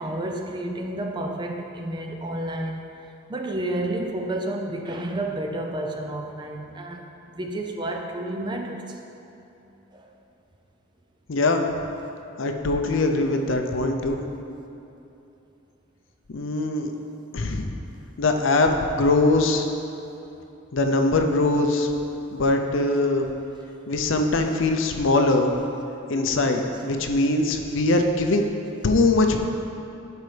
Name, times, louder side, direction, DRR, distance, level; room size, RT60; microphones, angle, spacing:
voice 1, 0.0-2.9 3.3-7.0 7.4-8.8 9.9-10.1 12.1-12.2, right 1 dB, 20° right, 2 dB, 0.4 m, -30 dB
voice 2, 11.3-11.7 12.4-14.3 16.3-16.9 17.3-17.7 18.2-19.7 20.7-21.9 22.3-23.3 23.9-25.5 26.1-28.4 28.8-29.5, left 2 dB, 65° left, 4 dB, 0.5 m, -22 dB
11.0 x 4.6 x 3.3 m, 2.9 s
head